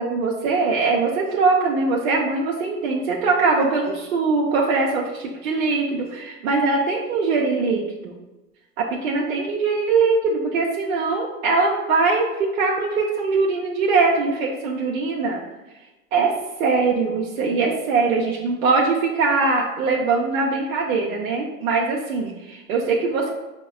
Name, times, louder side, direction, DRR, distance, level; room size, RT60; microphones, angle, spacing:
voice 1, 0.0-8.1 8.8-15.4 16.1-16.3 16.6-23.3, right 4 dB, 85° right, -2 dB, 0.6 m, -22 dB
5.2 x 2.1 x 2.3 m, 1.1 s
hypercardioid pair, 100°, 40 cm